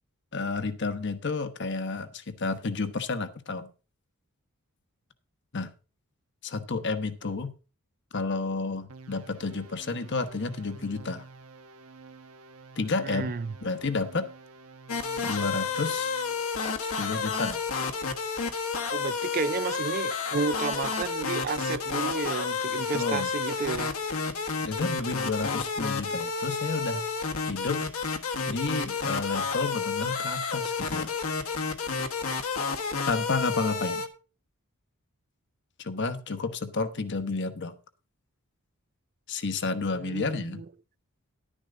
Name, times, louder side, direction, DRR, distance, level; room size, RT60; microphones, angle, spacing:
voice 1, 0.3-3.7 5.5-5.7 6.4-7.5 8.1-11.2 12.8-13.3 13.6-14.3 15.2-16.2 16.8-17.6 22.9-23.3 24.6-27.1 27.5-27.8 28.5-31.1 33.1-34.0 35.8-37.7 39.3-40.6, left 3 dB, 55° left, 1.1 m, -31 dB
sound 1, 8.9-16.5, right 3 dB, 80° right, 1.1 m, -49 dB
voice 2, 13.0-13.5 18.9-23.9 40.0-40.7, right 5 dB, 40° right, 0.4 m, -32 dB
sound 2, 14.9-34.1, left 5 dB, 70° left, 1.4 m, -30 dB
11.5 x 10.0 x 3.8 m
head